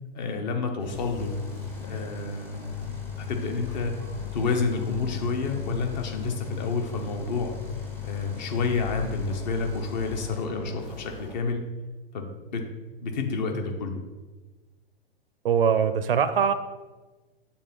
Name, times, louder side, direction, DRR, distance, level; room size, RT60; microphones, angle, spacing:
voice 1, 0.1-1.3 1.8-3.9 4.3-7.5 8.0-11.6 12.1-12.6 13.0-14.0, left 4 dB, 45° left, 4 dB, 1.0 m, -29 dB
sound 1, 0.8-11.3, left 5 dB, 85° left, 2.1 m, -42 dB
sound 2, 1.2-10.5, left 10 dB, 5° left, 0.6 m, -38 dB
voice 2, 15.4-16.5, right 7 dB, 65° right, 11 dB, 0.6 m, -22 dB
7.0 x 2.8 x 5.6 m, 1.2 s
figure-of-eight pair, 105°, 30 cm